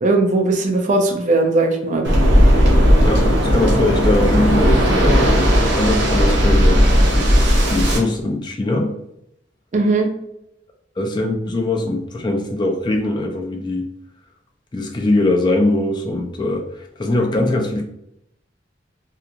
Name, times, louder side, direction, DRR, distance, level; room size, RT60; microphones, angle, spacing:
voice 1, 0.0-2.1 9.7-10.1, right 2 dB, 45° right, 3 dB, 0.4 m, -18 dB
Waves surf, 2.0-8.0, equal, 80° right, 0.8 m, -15 dB
voice 2, 3.0-7.4 7.7-8.9 11.0-13.9 14.7-17.8, left 2 dB, 25° left, 2 dB, 0.4 m, -21 dB
2.8 x 2.4 x 2.5 m, 0.79 s
head